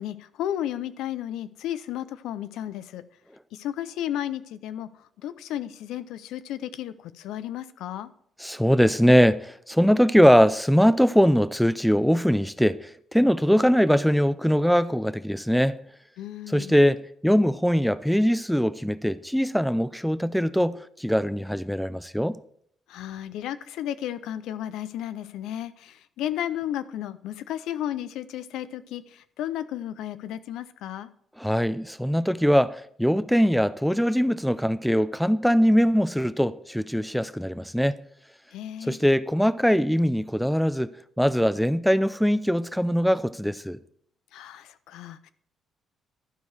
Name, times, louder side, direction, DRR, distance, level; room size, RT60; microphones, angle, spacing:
voice 1, 0.0-3.0 3.5-4.9 5.2-8.1 16.2-16.8 22.9-31.1 38.5-39.0 44.3-45.3, left 11 dB, 90° left, 0.4 m, -33 dB
voice 2, 8.4-15.8 16.5-22.4 31.4-38.0 38.8-40.9 41.2-43.8, equal, ahead, 0.4 m, -22 dB
12.0 x 4.7 x 4.7 m
cardioid pair, 90°, 0 cm